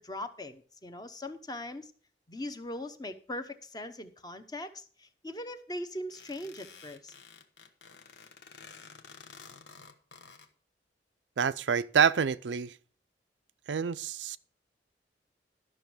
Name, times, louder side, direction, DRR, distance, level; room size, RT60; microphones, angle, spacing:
voice 1, 0.0-1.9 2.3-7.1, left 1 dB, 25° left, 0.9 m, -40 dB
sound 1, 6.1-10.5, left 5 dB, 75° left, 1.3 m, -52 dB
voice 2, 11.4-12.8 13.7-14.4, right 7 dB, 90° right, 0.5 m, -27 dB
12.0 x 6.3 x 6.0 m
head